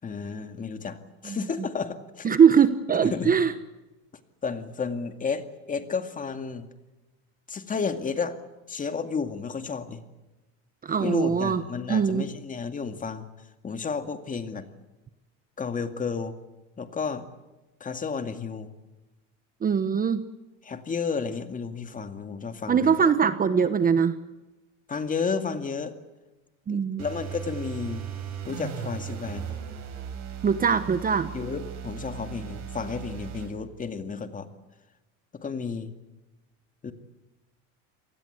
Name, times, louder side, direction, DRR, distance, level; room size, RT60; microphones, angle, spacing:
voice 1, 0.0-1.0 1.2-2.4 3.0-3.3 4.4-6.7 7.5-8.4 8.7-10.0 11.0-13.3 13.6-14.6 15.6-16.4 16.8-17.3 17.8-18.7 20.6-23.0 24.9-26.0 26.7-28.1 28.5-29.6 31.3-34.5 35.4-35.9 36.8-36.9, left 5 dB, 20° left, 8 dB, 2.2 m, -32 dB
voice 2, 2.2-3.5 10.8-11.6 11.9-12.2 19.6-20.2 22.7-24.1 26.7-27.0 30.4-31.3, right 7 dB, 25° right, 12 dB, 1.1 m, -21 dB
sound 1, 27.0-33.5, right 8 dB, 50° right, 6.4 m, -37 dB
28.0 x 19.0 x 8.1 m, 1.1 s
cardioid pair, 130°, 35 cm